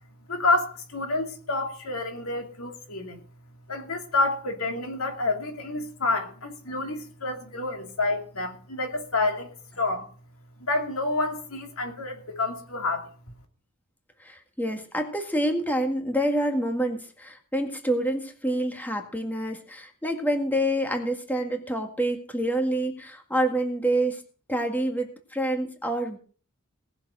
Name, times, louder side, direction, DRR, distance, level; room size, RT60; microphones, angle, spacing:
voice 1, 0.3-3.2 3.7-9.5 9.8-10.1 10.6-13.1, left 2 dB, 80° left, 2.6 m, -28 dB
voice 2, 14.2-24.2 24.5-26.2, right 1 dB, 10° left, 1.9 m, -27 dB
18.5 x 7.1 x 6.2 m
head